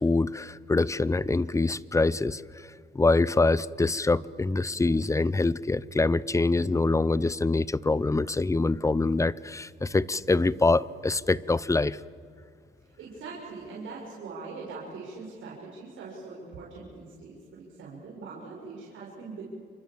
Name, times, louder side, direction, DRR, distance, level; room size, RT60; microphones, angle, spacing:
voice 1, 0.0-2.4 2.9-12.0, left 3 dB, 15° left, 20 dB, 0.7 m, -25 dB
voice 2, 13.0-19.4, right 4 dB, 80° right, -4 dB, 6.1 m, -42 dB
29.0 x 24.5 x 7.4 m, 2.1 s
cardioid pair, 90°, 20 cm